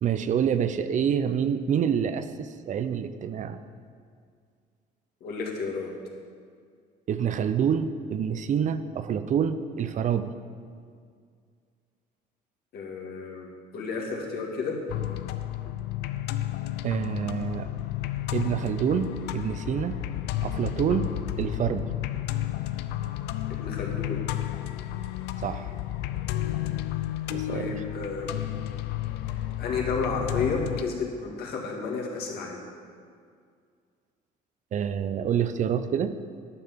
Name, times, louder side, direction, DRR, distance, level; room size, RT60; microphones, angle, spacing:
voice 1, 0.0-3.6 7.1-10.3 16.8-17.7 18.3-20.0 20.4-21.9 25.4-25.7 27.3-27.8 34.7-36.2, right 8 dB, 45° right, 11 dB, 0.5 m, -27 dB
voice 2, 5.2-5.9 12.7-14.8 23.5-24.2 27.4-28.4 29.2-32.6, left 4 dB, 65° left, -1 dB, 2.1 m, -32 dB
sound 1, 14.9-30.8, left 13 dB, 85° left, 0.5 m, -32 dB
10.5 x 5.7 x 7.3 m, 2.1 s
cardioid pair, 110°, 17 cm